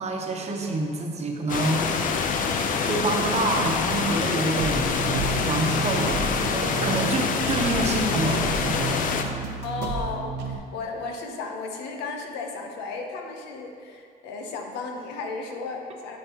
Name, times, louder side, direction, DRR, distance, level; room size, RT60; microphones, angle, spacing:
voice 1, 0.0-2.1 2.9-5.1 5.4-9.1, right 2 dB, 40° right, 2 dB, 1.0 m, -27 dB
sound 1, 1.5-9.2, left 5 dB, 55° left, 0.6 m, -26 dB
sound 2, 4.6-10.6, right 4 dB, 85° right, 0.8 m, -32 dB
voice 2, 9.6-16.2, left 4 dB, 90° left, 2 dB, 0.9 m, -34 dB
7.4 x 7.3 x 3.0 m, 2.3 s
cardioid pair, 110°, 17 cm